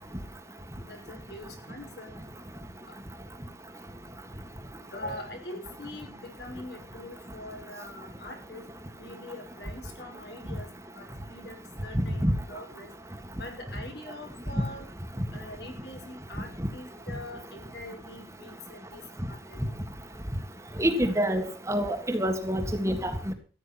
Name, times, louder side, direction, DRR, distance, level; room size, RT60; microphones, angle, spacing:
voice 1, 0.8-2.3 2.9-3.0 4.9-8.6 9.0-10.7 10.9-12.9 13.4-14.9 15.3-19.0 19.3-19.7, left 1 dB, 70° left, 3 dB, 5.5 m, -43 dB
voice 2, 12.0-12.3 20.8-23.3, equal, 15° right, 6 dB, 1.8 m, -27 dB
14.5 x 10.0 x 5.9 m, 0.40 s
head